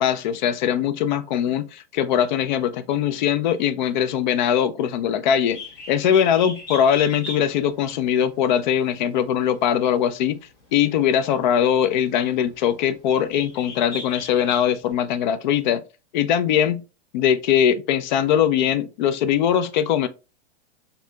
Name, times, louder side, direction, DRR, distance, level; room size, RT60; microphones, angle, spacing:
voice 1, 0.0-5.6 5.9-10.4 10.7-15.8 16.1-16.8 17.1-20.1, left 9 dB, 50° left, 0.4 m, -21 dB
Bird, 5.3-14.9, left 2 dB, 30° left, 1.1 m, -40 dB
4.3 x 2.7 x 2.3 m
hypercardioid pair, 150°, 31 cm